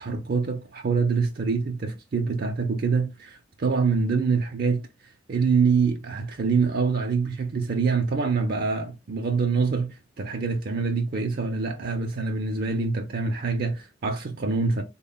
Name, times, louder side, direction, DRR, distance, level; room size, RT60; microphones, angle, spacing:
voice 1, 0.0-14.8, right 4 dB, 50° right, 0.4 m, -25 dB
3.6 x 2.1 x 3.8 m
head